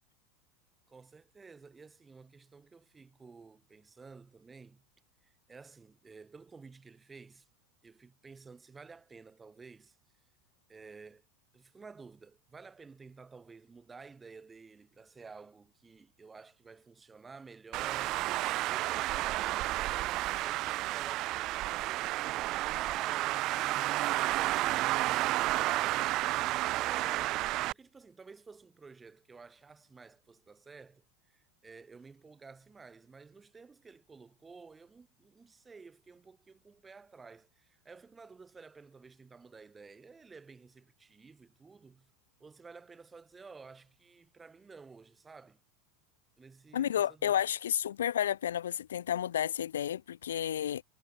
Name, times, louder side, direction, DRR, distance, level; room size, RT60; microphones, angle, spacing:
voice 1, 0.9-4.8 5.2-7.5 7.8-10.0 10.7-11.2 11.5-18.3 18.6-42.1 42.4-45.6 46.4-47.4, right 4 dB, 20° right, 3.9 m, -53 dB
Traffic noise roadway noise, 17.7-27.7, right 17 dB, 50° right, 0.7 m, -31 dB
voice 2, 46.7-50.8, left 10 dB, 80° left, 0.5 m, -31 dB
hypercardioid pair, 90°, 0 cm